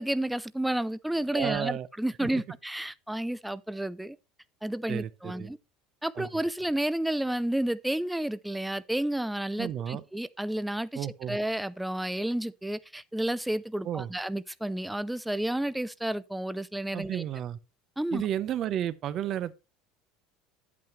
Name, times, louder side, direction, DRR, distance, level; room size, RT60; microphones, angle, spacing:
voice 1, 0.0-4.2 4.6-5.6 6.0-17.2 18.0-18.2, right 1 dB, 5° right, 0.4 m, -31 dB
voice 2, 1.3-1.9 2.2-2.3 4.9-5.5 6.2-6.3 9.6-10.0 10.9-11.4 13.8-14.1 16.9-17.6 18.1-19.5, right 11 dB, 40° right, 0.7 m, -32 dB
10.5 x 8.5 x 3.1 m
cardioid pair, 145°, 0 cm